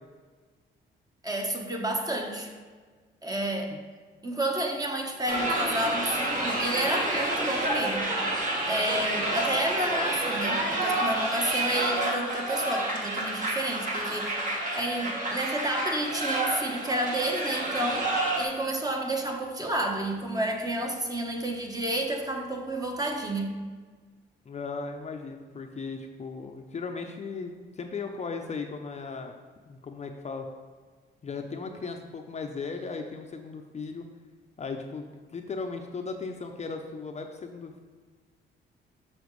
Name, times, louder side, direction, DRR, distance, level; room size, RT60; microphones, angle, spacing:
voice 1, 1.2-2.5 3.2-3.8 4.2-8.1 8.6-14.4 14.7-23.5, right 1 dB, 20° right, 2 dB, 1.0 m, -30 dB
sound 1, 5.3-18.4, right 1 dB, 40° right, 1.4 m, -29 dB
voice 2, 24.5-29.3 29.7-30.5 31.2-34.1 34.6-37.8, left 4 dB, 35° left, 4 dB, 0.6 m, -37 dB
7.1 x 5.8 x 3.1 m, 1.5 s
cardioid pair, 90°, 20 cm